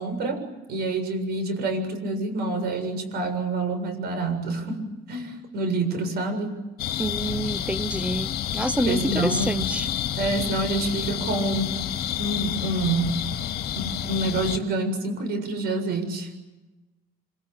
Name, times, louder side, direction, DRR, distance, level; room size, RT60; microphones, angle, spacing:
voice 1, 0.0-4.8 5.1-6.5 8.9-9.6 10.2-11.7 12.2-13.2 13.7-16.3, right 2 dB, 70° right, 7.5 m, -27 dB
sound 1, 6.8-14.6, left 11 dB, 65° left, 2.1 m, -29 dB
voice 2, 7.0-9.9, right 1 dB, 5° right, 1.0 m, -27 dB
26.0 x 25.0 x 8.4 m
cardioid pair, 110°, 17 cm